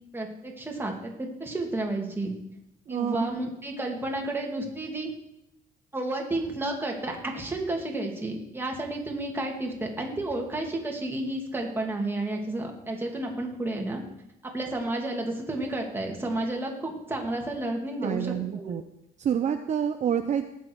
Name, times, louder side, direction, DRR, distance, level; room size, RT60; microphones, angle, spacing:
voice 1, 0.1-2.3 2.9-5.1 5.9-14.0 14.5-18.8, right 2 dB, 15° right, 0 dB, 2.5 m, -31 dB
voice 2, 2.9-3.5 18.0-18.8 19.2-20.4, right 8 dB, 45° right, 7 dB, 0.7 m, -28 dB
19.0 x 7.6 x 4.7 m, 0.84 s
cardioid pair, 110°, 17 cm